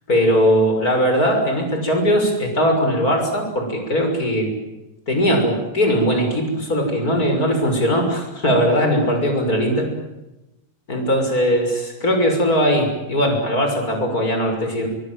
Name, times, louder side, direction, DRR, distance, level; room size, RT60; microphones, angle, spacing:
voice 1, 0.1-4.5 5.1-9.9 10.9-14.9, equal, 25° left, 3 dB, 6.5 m, -19 dB
24.5 x 23.5 x 9.2 m, 0.97 s
omnidirectional pair, 4.0 m